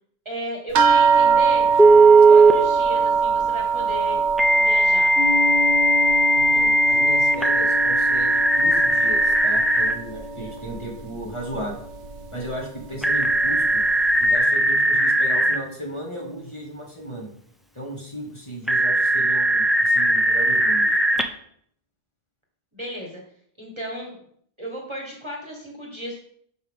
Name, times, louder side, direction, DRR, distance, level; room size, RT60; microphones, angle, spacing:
voice 1, 0.2-1.7 2.3-4.2 4.6-5.1 22.7-23.2 23.6-24.2 24.6-26.2, equal, 25° right, -1 dB, 1.6 m, -34 dB
sound 1, 0.7-9.6 9.9-10.8 11.5-11.6 12.0-12.2, right 6 dB, 90° right, 1.0 m, -23 dB
Telephone, 1.8-2.5 4.4-9.9 13.0-15.6 18.7-21.2, right 2 dB, ahead, 0.5 m, -18 dB
sound 2, 5.1-13.0, left 5 dB, 75° left, 1.9 m, -33 dB
voice 2, 6.3-11.8 12.3-13.8 14.2-17.3 17.7-21.0, right 1 dB, 25° left, -3 dB, 2.2 m, -35 dB
12.0 x 5.1 x 3.6 m, 0.65 s
omnidirectional pair, 1.2 m